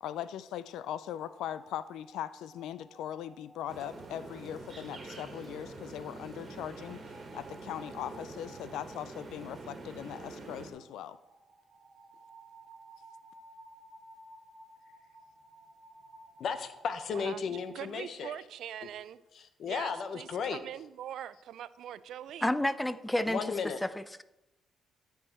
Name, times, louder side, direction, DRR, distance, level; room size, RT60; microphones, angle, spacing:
voice 1, 0.0-11.2, left 10 dB, 85° left, 15 dB, 0.4 m, -40 dB
sound 1, 1.0-17.8, right 2 dB, 15° right, 2.1 m, -57 dB
sound 2, 3.7-10.7, right 3 dB, 40° right, 1.7 m, -46 dB
voice 2, 16.4-18.3 19.6-20.6 23.3-23.8, left 6 dB, 60° left, 10 dB, 0.8 m, -34 dB
voice 3, 17.1-19.2 19.7-22.5, right 10 dB, 75° right, 16 dB, 0.3 m, -43 dB
voice 4, 22.4-23.4 23.8-24.2, left 1 dB, 10° left, 14 dB, 0.4 m, -30 dB
12.5 x 4.7 x 4.4 m, 0.97 s
cardioid pair, 90°, 0 cm